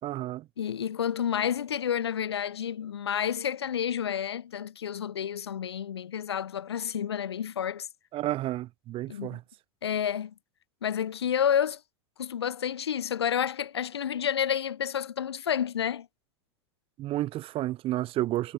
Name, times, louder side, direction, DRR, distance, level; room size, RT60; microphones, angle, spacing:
voice 1, 0.0-0.5 8.1-9.4 17.0-18.5, right 15 dB, 45° right, 5.0 m, -31 dB
voice 2, 0.6-7.9 9.1-9.4 9.8-10.3 10.8-11.8 12.2-16.1, left 9 dB, 85° left, 3.4 m, -30 dB
hypercardioid pair, 95°, 13 cm